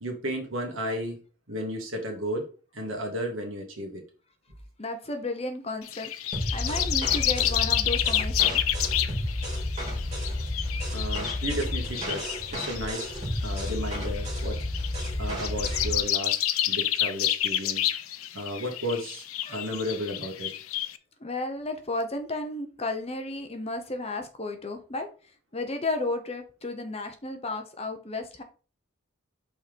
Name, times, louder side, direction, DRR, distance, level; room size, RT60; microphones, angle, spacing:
voice 1, 0.0-1.2 1.5-2.5 2.7-4.0 10.9-14.6 15.2-16.4 16.7-17.9 18.3-20.5, equal, 70° right, 2 dB, 2.0 m, -33 dB
voice 2, 4.8-6.1 6.5-8.6 19.5-19.6 21.2-25.1 25.5-28.4, left 2 dB, 30° left, 6 dB, 0.9 m, -33 dB
sound 1, 5.8-21.0, left 12 dB, 85° left, 0.6 m, -30 dB
sound 2, 6.3-16.0, left 1 dB, 30° right, 2.7 m, -31 dB
5.6 x 4.4 x 5.2 m, 0.36 s
head